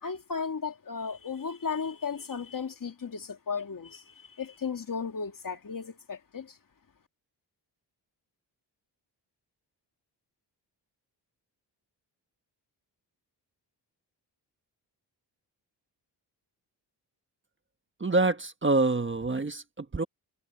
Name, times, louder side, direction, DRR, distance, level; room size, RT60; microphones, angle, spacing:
voice 1, 0.0-6.6, left 5 dB, 50° left, 2.5 m, -35 dB
voice 2, 18.0-20.0, right 2 dB, 25° right, 1.4 m, -26 dB
cardioid pair, 75°, 43 cm